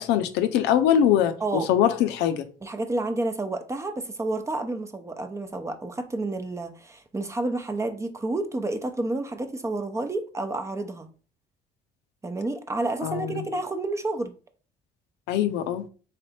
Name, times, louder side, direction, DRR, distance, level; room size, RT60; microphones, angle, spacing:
voice 1, 0.0-2.4 13.0-13.4 15.3-15.9, left 10 dB, 90° left, 0.5 m, -23 dB
voice 2, 2.6-11.1 12.2-14.3, right 2 dB, 15° right, 0.6 m, -30 dB
3.8 x 3.3 x 4.2 m
cardioid pair, 110°, 17 cm